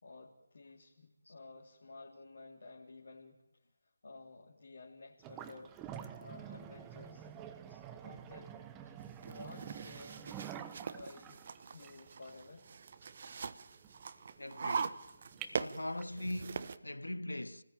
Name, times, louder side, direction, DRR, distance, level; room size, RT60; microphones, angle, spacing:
voice 1, 0.0-3.4 4.0-5.7 6.2-7.3 8.0-8.6 9.3-10.4 10.9-12.7, left 3 dB, 50° left, 3.5 m, -53 dB
sound 1, 5.2-16.2, right 9 dB, 10° right, 1.3 m, -49 dB
sound 2, 9.0-16.8, right 5 dB, 40° right, 1.2 m, -42 dB
voice 2, 14.4-15.0 15.6-17.6, left 1 dB, 75° left, 1.4 m, -41 dB
29.0 x 19.0 x 8.9 m
figure-of-eight pair, 155°, 0 cm